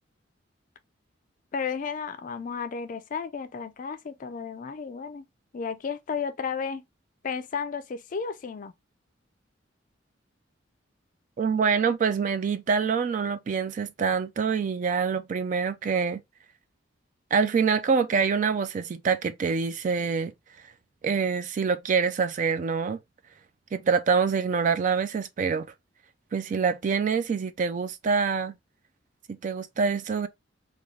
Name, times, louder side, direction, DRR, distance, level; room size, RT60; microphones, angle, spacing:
voice 1, 1.5-5.3 5.5-6.8 7.2-8.7, left 6 dB, 45° left, 0.4 m, -33 dB
voice 2, 11.4-16.2 17.3-20.3 21.0-23.0 23.7-25.7 26.3-28.6 29.3-30.3, right 5 dB, 40° right, 0.3 m, -25 dB
3.6 x 2.3 x 3.2 m
head